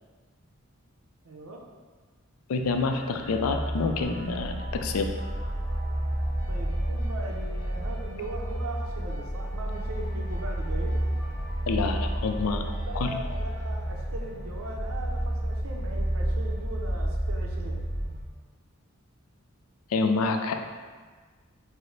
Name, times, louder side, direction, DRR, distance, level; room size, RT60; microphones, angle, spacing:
voice 1, 1.2-1.6 6.5-11.0 12.6-17.8, right 2 dB, 80° right, 1 dB, 0.6 m, -40 dB
voice 2, 2.5-5.1 11.7-12.6 12.9-13.2 19.9-20.5, left 4 dB, 85° left, 5 dB, 0.4 m, -27 dB
sound 1, 2.6-18.2, right 1 dB, 5° left, 1.2 m, -31 dB
sound 2, 4.0-14.4, equal, 45° right, 1.5 m, -49 dB
4.7 x 2.1 x 3.9 m, 1.5 s
head